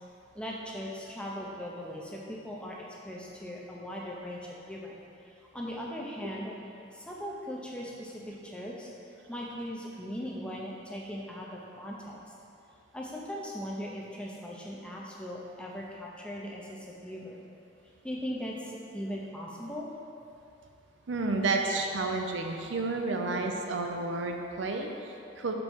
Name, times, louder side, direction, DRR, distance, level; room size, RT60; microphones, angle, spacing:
voice 1, 0.3-2.8 3.0-4.9 5.5-6.5 6.9-8.9 9.3-12.2 12.9-17.4 18.0-19.9, equal, 5° left, -3 dB, 0.6 m, -39 dB
voice 2, 21.1-25.5, right 3 dB, 70° right, 3 dB, 0.6 m, -31 dB
5.3 x 4.3 x 6.2 m, 2.6 s
head